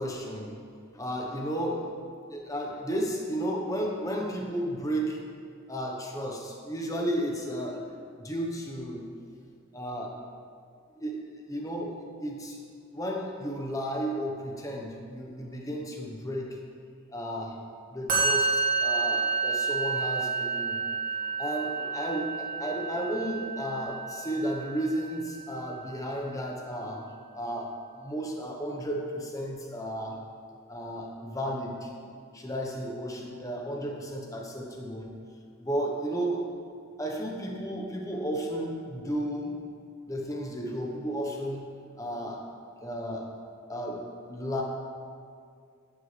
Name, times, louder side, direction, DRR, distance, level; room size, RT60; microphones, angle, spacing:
voice 1, 0.0-0.5 0.9-1.9 2.3-5.2 5.7-7.8 8.2-9.0 9.7-10.2 11.0-11.2 11.5-11.9 12.2-12.6 12.9-16.6 17.1-17.6 17.9-20.8 21.4-27.1 27.3-30.2 30.7-31.9 32.3-35.1 35.6-36.5 37.0-39.5 40.1-41.6 42.0-42.4 42.8-43.3 43.7-44.6, equal, 15° left, 0 dB, 1.1 m, -33 dB
Musical instrument, 18.1-25.4, right 5 dB, 45° right, 2.4 m, -30 dB
11.5 x 9.5 x 3.4 m, 2.2 s
head